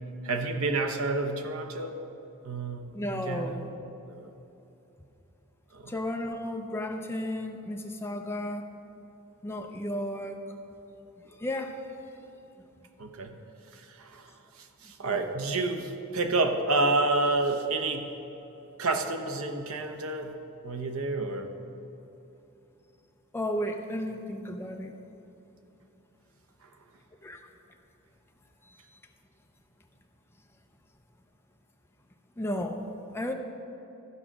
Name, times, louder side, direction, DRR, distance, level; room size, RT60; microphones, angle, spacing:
voice 1, 0.2-2.0 2.4-3.6 4.1-4.3 5.7-5.9 13.0-13.4 13.7-18.1 18.8-20.4 20.6-21.5 26.6-26.7, right 3 dB, 70° right, 5 dB, 0.9 m, -29 dB
voice 2, 2.9-3.6 5.9-8.7 9.4-10.4 11.2-11.8 15.0-15.2 23.3-24.9 27.2-27.4 32.4-32.8 33.1-33.3, left 1 dB, 10° left, 3 dB, 0.6 m, -33 dB
14.0 x 4.9 x 6.0 m, 3.0 s
head